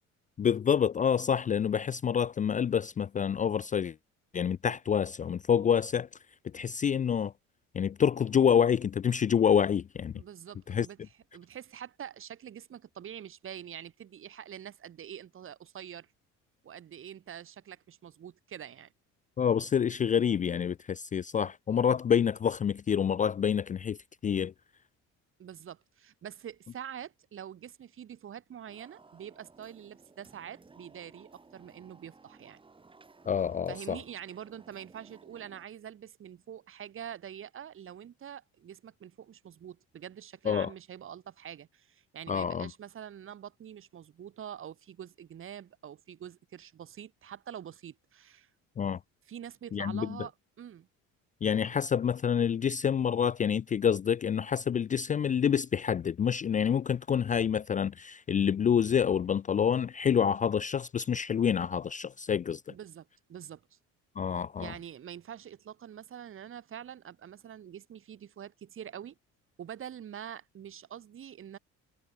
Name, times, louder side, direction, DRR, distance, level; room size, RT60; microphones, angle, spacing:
voice 1, 0.4-4.0 4.3-6.1 6.5-7.3 7.7-10.2 10.7-10.9 19.4-24.0 24.2-24.5 33.3-34.0 40.5-40.7 42.3-42.7 48.8-49.0 49.7-50.2 51.4-62.7 64.2-64.7, left 8 dB, 25° left, 0.5 m, -27 dB
voice 2, 10.1-16.1 16.6-18.9 25.4-32.6 33.7-48.5 49.3-50.3 50.6-50.9 62.7-63.8 64.6-69.1 69.6-71.6, right 9 dB, 45° right, 4.1 m, -45 dB
sound 1, 28.7-35.6, right 4 dB, 15° right, 3.1 m, -58 dB
cardioid pair, 135°, 29 cm